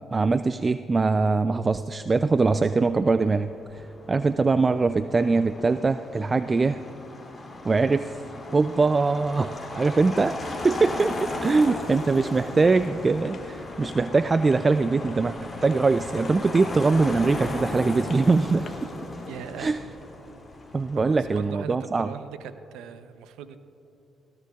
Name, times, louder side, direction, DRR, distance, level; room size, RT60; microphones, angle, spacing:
voice 1, 0.0-6.8 7.6-8.1 8.5-18.8 19.6-19.8 20.7-22.1, right 3 dB, 30° right, 11 dB, 0.3 m, -22 dB
Motor vehicle (road), 2.6-21.4, left 2 dB, 25° left, 2.6 m, -37 dB
sound 1, 8.7-18.9, left 4 dB, 55° left, 1.0 m, -50 dB
voice 2, 19.2-19.7 20.9-23.6, right 9 dB, 90° right, 11 dB, 0.6 m, -40 dB
19.5 x 16.5 x 2.3 m, 2.8 s
cardioid pair, 75°, 0 cm